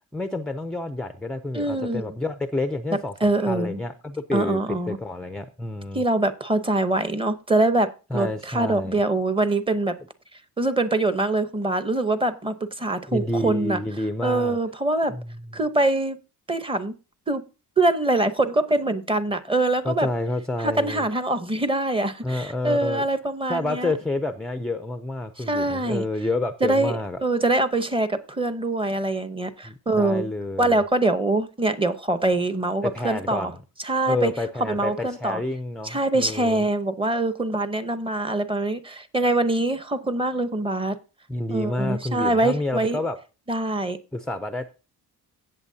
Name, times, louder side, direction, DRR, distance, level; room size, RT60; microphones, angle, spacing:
voice 1, 0.1-3.1 3.4-6.0 8.1-9.0 13.1-14.6 15.1-15.4 19.8-21.1 22.2-23.0 23.5-27.2 29.6-30.8 32.8-33.5 34.1-36.7 41.3-43.2 44.1-44.7, left 2 dB, ahead, 10 dB, 0.4 m, -29 dB
voice 2, 1.5-2.1 3.2-3.8 4.3-5.0 5.9-10.0 10.6-13.8 14.2-15.1 15.5-16.2 16.5-16.9 17.3-17.4 17.8-20.1 20.6-23.9 25.4-26.0 26.6-26.9 27.2-30.3 30.6-33.5 33.8-34.3 34.7-35.4 35.8-41.0 41.5-43.0 43.5-44.0, right 2 dB, 15° right, 11 dB, 0.8 m, -24 dB
17.0 x 6.9 x 2.7 m, 0.32 s
cardioid pair, 135°, 38 cm